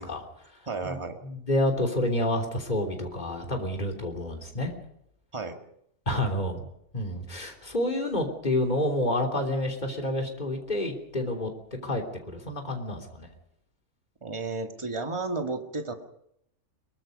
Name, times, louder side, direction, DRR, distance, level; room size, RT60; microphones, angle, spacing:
voice 1, 0.0-4.7 6.1-6.7 6.9-11.5 11.8-13.3, left 1 dB, 30° left, 2 dB, 3.5 m, -29 dB
voice 2, 0.7-1.2 5.3-5.6 14.2-15.9, right 3 dB, 20° right, 4 dB, 2.0 m, -33 dB
23.0 x 23.0 x 5.4 m, 0.74 s
omnidirectional pair, 1.5 m